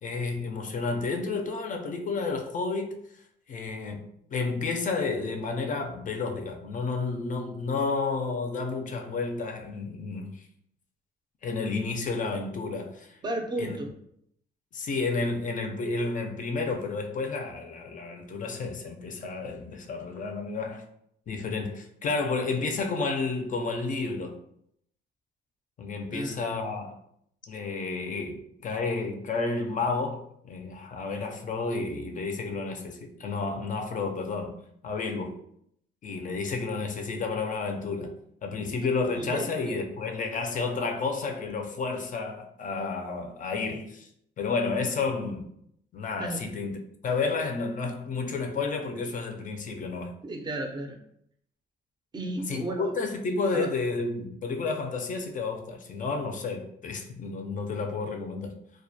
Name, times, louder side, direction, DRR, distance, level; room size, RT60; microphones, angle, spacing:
voice 1, 0.0-3.0 3.5-10.3 11.4-13.2 13.6-13.8 14.7-20.8 21.3-24.4 25.8-27.0 27.5-34.6 34.8-35.4 36.0-38.1 38.4-44.1 44.4-45.5 45.9-46.7 47.0-50.1 52.5-58.5, left 4 dB, 40° left, 0.4 m, -31 dB
voice 2, 13.2-13.9 26.1-26.4 39.1-39.8 46.2-46.4 50.2-51.0 52.1-52.9 53.5-53.7, right 1 dB, 20° right, 0.5 m, -33 dB
2.2 x 2.1 x 2.7 m
cardioid pair, 90°, 20 cm